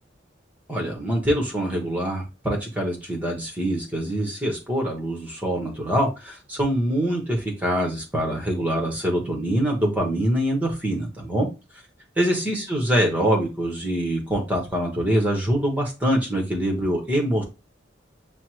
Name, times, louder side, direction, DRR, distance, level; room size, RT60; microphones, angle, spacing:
voice 1, 0.7-11.5 12.2-17.4, equal, 10° right, 1 dB, 0.9 m, -24 dB
6.0 x 2.0 x 2.9 m, 0.28 s
head